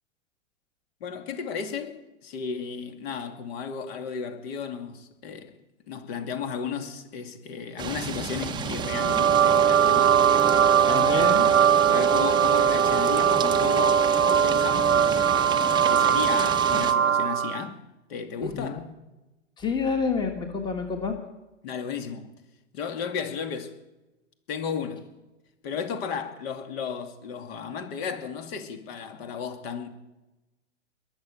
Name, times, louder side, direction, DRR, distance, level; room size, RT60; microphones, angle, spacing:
voice 1, 1.0-5.5 5.9-11.3 11.8-17.8 18.1-18.9 21.6-22.3 22.7-23.8 24.5-25.0 25.6-29.9, left 6 dB, 50° left, 2.5 m, -34 dB
sound 1, 7.8-16.9, right 7 dB, 10° right, 0.7 m, -32 dB
sound 2, 8.8-17.7, right 8 dB, 85° right, 1.0 m, -21 dB
voice 2, 10.9-11.5 18.4-18.8 19.6-21.2, left 5 dB, 10° left, 1.6 m, -28 dB
21.5 x 7.1 x 8.5 m
hypercardioid pair, 130°, 38 cm